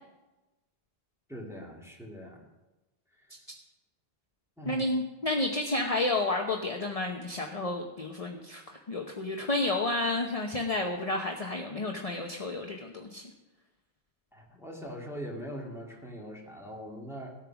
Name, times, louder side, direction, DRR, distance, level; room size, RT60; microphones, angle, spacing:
voice 1, 1.3-2.4 3.2-3.3 4.6-4.9 14.3-17.4, equal, ahead, -2 dB, 2.3 m, -42 dB
voice 2, 4.6-13.3, left 2 dB, 35° left, 2 dB, 1.0 m, -31 dB
16.0 x 9.0 x 6.0 m, 1.1 s
omnidirectional pair, 1.1 m